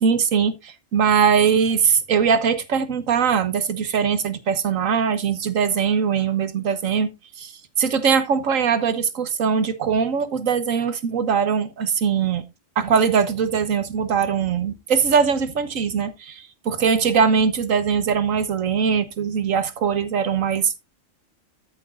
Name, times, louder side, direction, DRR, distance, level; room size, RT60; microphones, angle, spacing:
voice 1, 0.0-7.1 7.4-7.5 7.8-12.4 12.8-20.8, right 6 dB, 75° right, 1.5 m, -21 dB
13.5 x 7.2 x 2.5 m
omnidirectional pair, 1.4 m